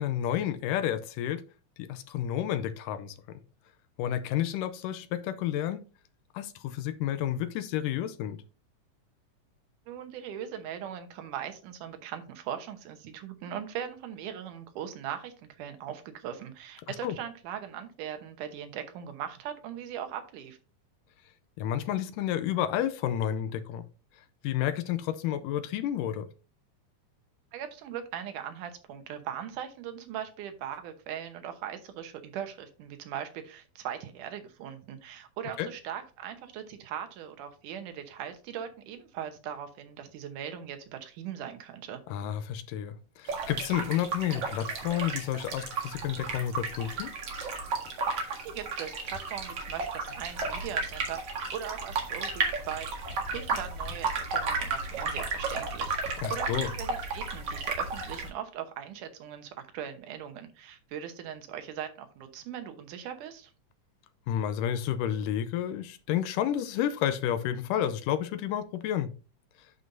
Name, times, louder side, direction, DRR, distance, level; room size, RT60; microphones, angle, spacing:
voice 1, 0.0-1.4 1.8-3.2 4.0-5.8 6.3-8.4 16.9-17.2 21.6-23.8 24.4-26.3 35.6-35.7 42.1-47.1 56.2-56.7 64.3-69.1, left 10 dB, 90° left, 2.3 m, -30 dB
voice 2, 9.9-20.6 27.5-42.0 48.2-63.5, right 9 dB, 80° right, 2.5 m, -40 dB
sound 1, 43.3-58.3, right 4 dB, 55° right, 2.5 m, -33 dB
11.0 x 5.3 x 2.6 m
omnidirectional pair, 3.7 m